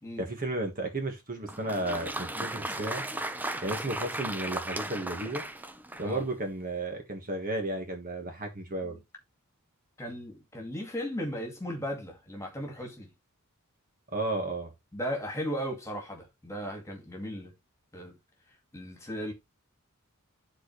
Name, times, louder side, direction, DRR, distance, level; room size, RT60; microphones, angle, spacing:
voice 1, 0.2-3.0 3.6-5.4 6.0-9.0 14.1-14.7, right 2 dB, 40° right, 1.6 m, -33 dB
Applause, 1.4-6.3, right 1 dB, 10° right, 0.5 m, -36 dB
voice 2, 10.0-13.1 14.9-17.5 17.9-18.2 18.7-19.3, equal, 15° left, 2.3 m, -36 dB
11.0 x 4.4 x 3.2 m
head